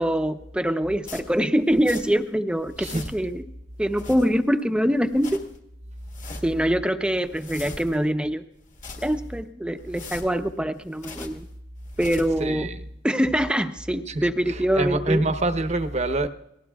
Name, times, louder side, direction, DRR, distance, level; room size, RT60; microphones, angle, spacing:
voice 1, 0.0-3.5 3.8-5.4 6.4-8.4 9.0-11.5 12.0-12.7 13.0-15.2, equal, 5° right, 0.8 m, -24 dB
sound 1, 1.0-2.3 2.6-3.4 3.8-4.6 5.0-5.6 6.0-6.7 7.1-8.1 8.6-9.4 9.8-11.5 11.8-12.5, left 3 dB, 40° left, 1.6 m, -42 dB
voice 2, 12.4-12.7 14.1-16.3, right 2 dB, 35° right, 0.9 m, -26 dB
29.0 x 19.5 x 2.4 m
head